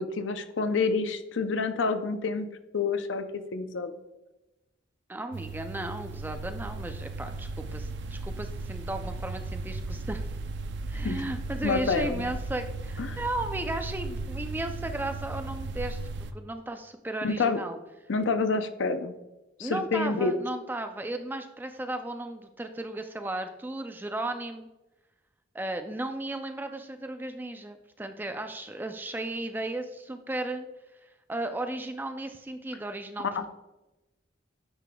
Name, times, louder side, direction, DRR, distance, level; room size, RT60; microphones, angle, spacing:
voice 1, 0.0-2.5 2.7-3.2 3.5-3.9 11.0-11.2 11.6-12.2 13.0-13.2 17.2-17.6 18.1-19.1 19.6-20.3 33.3-33.5, left 4 dB, 80° left, 9 dB, 0.5 m, -28 dB
voice 2, 5.1-10.2 10.9-16.0 16.3-17.8 19.6-24.7 25.5-30.7 31.0-33.5, right 1 dB, 10° right, 7 dB, 0.4 m, -35 dB
sound 1, 5.3-16.3, right 2 dB, 65° right, 0.5 m, -36 dB
9.6 x 5.0 x 2.3 m, 1.0 s
head